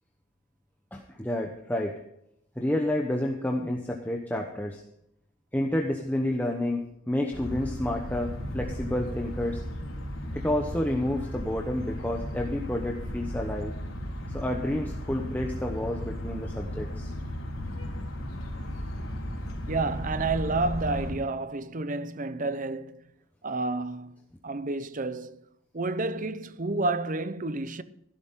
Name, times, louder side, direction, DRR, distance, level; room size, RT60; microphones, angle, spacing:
voice 1, 0.9-2.0 2.6-4.8 5.5-9.6 10.3-13.7 14.3-17.1, left 1 dB, 10° left, 1.0 m, -30 dB
sound 1, 7.3-21.1, equal, 85° left, 3.9 m, -35 dB
voice 2, 19.7-23.1 23.4-25.4 25.7-27.8, right 3 dB, 40° right, 0.8 m, -30 dB
15.5 x 12.5 x 3.8 m
head